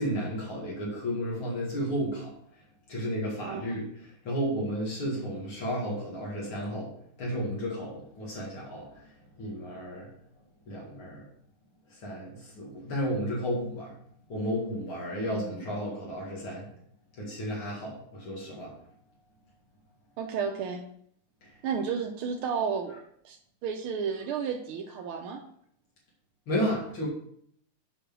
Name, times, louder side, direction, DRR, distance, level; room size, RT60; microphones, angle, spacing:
voice 1, 0.0-2.3 2.9-3.9 4.2-6.9 7.2-9.0 9.4-10.1 10.7-11.2 12.0-14.0 14.3-16.7 17.2-18.7 21.4-21.5 26.5-27.1, equal, 70° left, -4 dB, 3.0 m, -32 dB
voice 2, 15.2-15.6 20.2-20.8 21.6-23.0 23.2-23.4 23.6-25.4, right 6 dB, 80° right, 1 dB, 1.7 m, -32 dB
8.0 x 5.4 x 6.1 m, 0.66 s
omnidirectional pair, 2.4 m